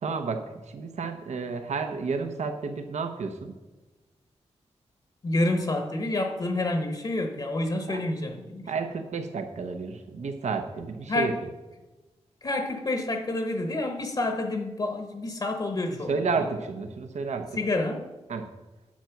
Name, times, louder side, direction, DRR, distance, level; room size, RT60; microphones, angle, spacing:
voice 1, 0.0-3.5 7.9-8.0 8.7-11.3 16.1-17.5 18.3-18.5, right 4 dB, 80° right, 6 dB, 0.9 m, -31 dB
voice 2, 5.2-8.7 11.1-11.4 12.4-16.5 17.6-18.1, left 2 dB, 40° left, 5 dB, 0.9 m, -28 dB
9.9 x 7.5 x 5.9 m, 1.2 s
wide cardioid pair, 170°, 12 cm